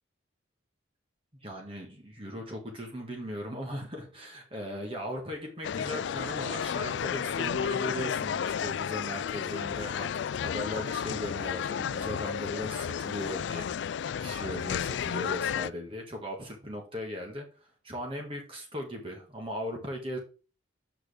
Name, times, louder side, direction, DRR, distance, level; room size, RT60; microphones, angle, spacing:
voice 1, 1.3-20.2, equal, 30° right, 1.7 m, -38 dB
sound 1, 5.6-15.7, left 8 dB, 65° left, 0.3 m, -32 dB
7.8 x 6.1 x 3.4 m
head